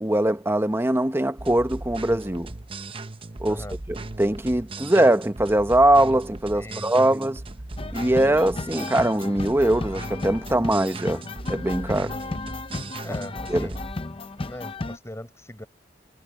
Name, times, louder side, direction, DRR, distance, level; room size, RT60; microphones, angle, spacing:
voice 1, 0.0-2.5 3.4-7.4 7.9-11.2 11.5-12.2 13.5-13.7, right 1 dB, 15° right, 1.1 m, -22 dB
sound 1, 1.4-14.0, right 2 dB, 30° right, 0.8 m, -38 dB
voice 2, 6.5-7.1 13.0-14.2 14.4-15.7, left 1 dB, 15° left, 4.7 m, -40 dB
sound 2, 7.8-15.0, left 2 dB, 30° left, 0.8 m, -34 dB
head